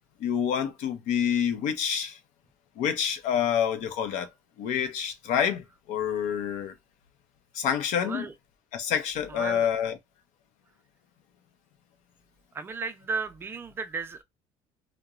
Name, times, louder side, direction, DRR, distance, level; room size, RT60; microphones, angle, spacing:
voice 1, 0.2-2.2 2.8-4.3 4.6-5.6 5.9-6.7 7.5-8.3 8.7-9.9, left 8 dB, 70° left, 0.6 m, -27 dB
voice 2, 9.3-9.7 12.5-14.2, right 4 dB, 20° right, 0.4 m, -34 dB
2.9 x 2.1 x 2.4 m
cardioid pair, 160°, 13 cm